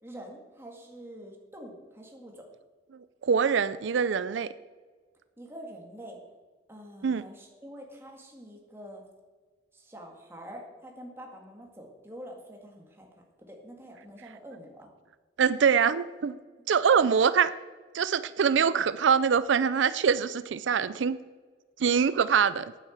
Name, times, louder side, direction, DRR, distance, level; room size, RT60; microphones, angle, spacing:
voice 1, 0.0-2.5 5.4-6.2 6.7-9.0 9.7-13.1 13.5-14.9 17.0-17.1, equal, 15° right, 0 dB, 2.0 m, -46 dB
voice 2, 3.2-4.5 7.0-7.2 15.4-16.4 16.7-17.5 17.9-21.2 21.8-22.7, right 6 dB, 85° right, 15 dB, 0.4 m, -24 dB
9.1 x 9.1 x 8.0 m, 1.5 s
head